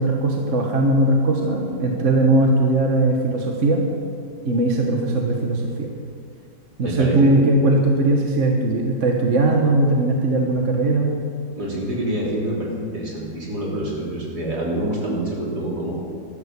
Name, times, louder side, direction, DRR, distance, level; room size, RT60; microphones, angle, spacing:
voice 1, 0.0-3.8 4.4-5.9 6.8-11.1, right 2 dB, 45° right, 1 dB, 1.4 m, -19 dB
voice 2, 6.8-7.4 11.6-16.0, right 1 dB, 60° right, -5 dB, 4.2 m, -26 dB
14.0 x 11.5 x 6.7 m, 2.2 s
omnidirectional pair, 1.9 m